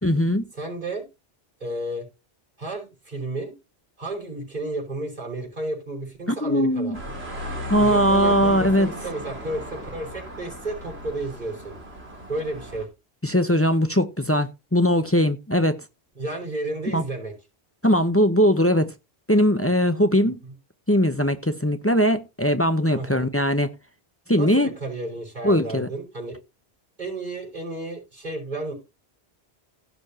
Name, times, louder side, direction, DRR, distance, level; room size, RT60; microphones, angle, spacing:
voice 1, 0.0-0.4 6.4-7.0 7.7-8.9 13.2-15.8 16.9-17.0 17.8-18.9 19.3-20.4 20.9-23.7 24.3-24.7 25.4-25.9, equal, 15° left, 0.8 m, -20 dB
voice 2, 0.6-1.0 1.6-2.1 2.6-3.5 4.0-7.0 7.8-11.7 12.3-12.9 16.2-17.3 22.9-23.3 24.3-26.4 27.0-28.7, right 2 dB, 45° right, 6.0 m, -32 dB
sound 1, 6.9-12.9, left 1 dB, 75° right, 2.8 m, -35 dB
16.5 x 7.0 x 2.9 m
omnidirectional pair, 1.1 m